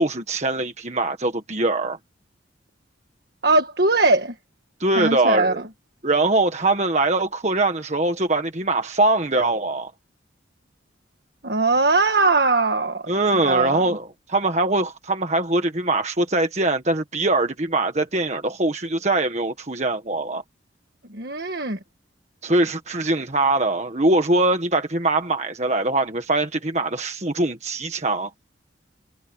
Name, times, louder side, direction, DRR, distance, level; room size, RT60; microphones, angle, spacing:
voice 1, 0.0-2.0 4.8-5.6 6.0-9.9 13.1-20.4 22.4-28.3, right 2 dB, 35° right, 1.5 m, -22 dB
voice 2, 3.4-4.3 4.9-5.5 11.4-13.1 13.4-13.8 21.1-21.8, right 3 dB, 55° right, 1.6 m, -20 dB
head